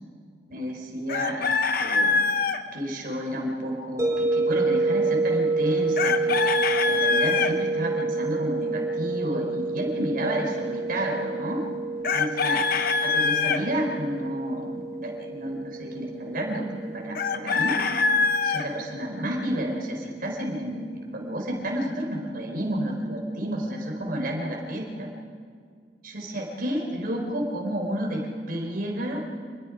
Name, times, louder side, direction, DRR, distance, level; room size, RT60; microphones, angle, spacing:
voice 1, 0.5-2.2 2.7-6.4 6.8-11.6 12.1-12.6 13.0-16.7 16.9-17.8 18.4-20.8 21.1-25.1 26.0-29.2, equal, 55° right, 0 dB, 4.3 m, -30 dB
Chicken rooster, 1.1-2.6 6.0-7.5 12.0-13.6 17.1-18.6, left 4 dB, 55° left, 1.0 m, -24 dB
sound 1, 4.0-18.9, right 3 dB, 20° right, 4.4 m, -29 dB
28.0 x 21.0 x 5.1 m, 2.1 s
head